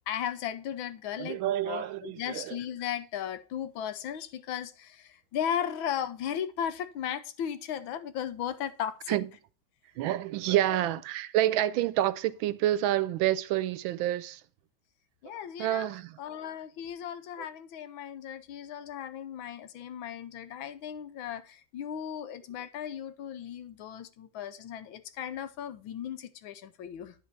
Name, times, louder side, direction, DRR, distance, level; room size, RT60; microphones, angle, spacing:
voice 1, 0.1-1.4 1.6-9.2 10.7-10.9 15.2-15.9 16.2-27.1, left 9 dB, 85° left, 1.6 m, -36 dB
voice 2, 1.2-2.6 9.1-9.3 10.0-14.4 15.3-15.4 15.6-16.2, right 13 dB, 80° right, 1.4 m, -28 dB
10.5 x 4.2 x 4.6 m
omnidirectional pair, 2.2 m